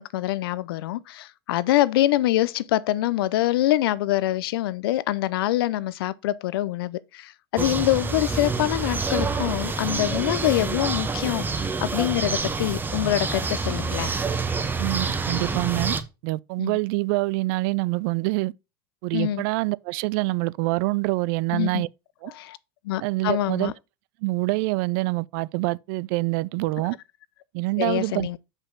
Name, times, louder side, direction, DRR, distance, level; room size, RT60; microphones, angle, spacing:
voice 1, 0.0-14.1 16.6-16.8 19.1-19.4 21.5-21.8 22.2-22.6 22.8-23.7 27.8-28.4, left 15 dB, 80° left, 0.5 m, -25 dB
sound 1, 7.6-16.0, right 4 dB, 15° right, 0.8 m, -27 dB
voice 2, 14.8-16.0 16.2-18.5 19.0-21.9 22.2-22.3 23.0-23.7 24.2-27.0 27.5-28.3, right 22 dB, 65° right, 0.4 m, -25 dB
6.1 x 5.3 x 3.7 m
supercardioid pair, 105°, 12 cm